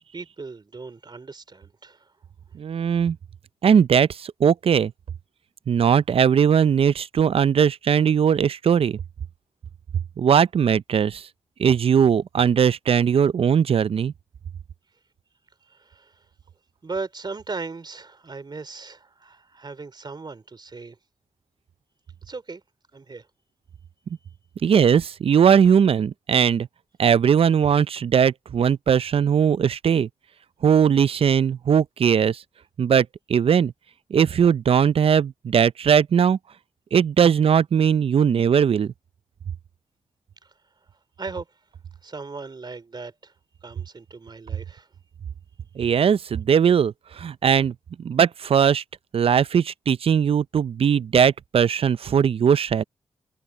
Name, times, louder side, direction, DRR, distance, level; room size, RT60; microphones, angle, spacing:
voice 1, 0.1-2.1 15.6-16.2 16.8-21.0 22.2-22.6 22.9-23.3 40.4-40.5 41.2-41.5 42.0-43.3 43.6-44.9, right 4 dB, 45° right, 3.1 m, -37 dB
voice 2, 2.6-3.2 3.6-4.9 5.7-9.0 10.2-11.3 11.6-14.1 24.6-26.7 27.0-30.1 30.6-32.4 32.8-33.7 34.1-36.4 36.9-38.9 45.8-48.8 49.1-52.8, right 7 dB, 60° right, 0.5 m, -19 dB
cardioid pair, 50°, 11 cm